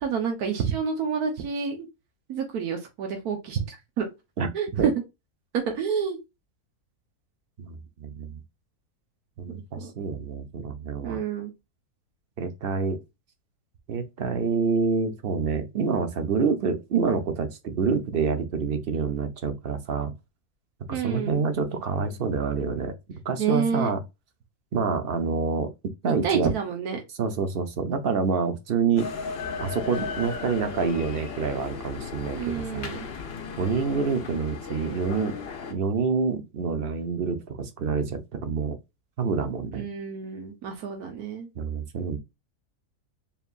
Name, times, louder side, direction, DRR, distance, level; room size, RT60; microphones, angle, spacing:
voice 1, 0.0-1.9 2.3-4.1 4.5-4.9 5.5-6.2 9.5-9.9 11.0-11.5 20.9-21.5 23.4-23.9 26.2-27.0 32.3-33.0 39.7-41.5, right 6 dB, 80° right, 1.5 m, -29 dB
voice 2, 4.4-4.9 7.6-8.4 9.4-11.2 12.4-13.0 13.9-20.1 20.9-22.9 23.2-24.0 24.7-25.7 26.0-26.5 27.2-29.1 29.6-32.9 33.6-35.4 35.7-38.8 39.2-39.9 41.6-42.2, right 5 dB, 50° right, 0.7 m, -27 dB
sound 1, 29.0-35.7, left 5 dB, 50° left, 0.8 m, -36 dB
4.6 x 3.5 x 2.4 m
omnidirectional pair, 1.6 m